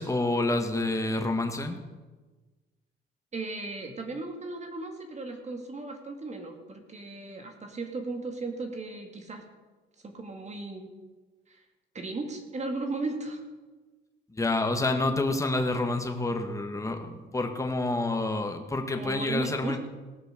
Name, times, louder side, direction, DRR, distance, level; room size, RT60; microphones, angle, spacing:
voice 1, 0.0-1.8 14.3-19.8, left 2 dB, 15° left, 4 dB, 1.7 m, -28 dB
voice 2, 3.3-9.4 10.0-10.9 11.5-11.6 11.9-13.4 18.9-19.8, right 3 dB, 35° right, 3 dB, 2.2 m, -36 dB
18.0 x 6.2 x 6.6 m, 1.3 s
cardioid pair, 90°, 20 cm